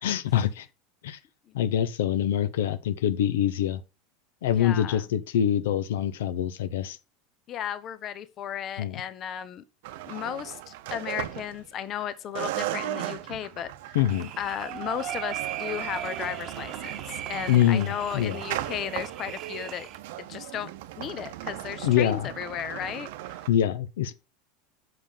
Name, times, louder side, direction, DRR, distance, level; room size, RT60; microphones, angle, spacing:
voice 1, 0.0-0.7 1.0-1.2 1.5-3.8 4.4-7.0 8.8-8.9 13.9-14.3 17.5-18.4 21.8-22.3 23.5-24.1, left 10 dB, 85° left, 0.7 m, -25 dB
voice 2, 4.5-5.1 7.5-9.6 10.1-14.0 14.4-19.9 20.2-20.7 21.0-23.4, left 10 dB, 40° left, 0.8 m, -35 dB
sound 1, 9.8-12.0 12.4-23.5, right 14 dB, 75° right, 0.7 m, -37 dB
sound 2, 14.1-20.0, right 12 dB, 45° right, 0.9 m, -38 dB
5.9 x 5.4 x 5.0 m
supercardioid pair, 120°, 0 cm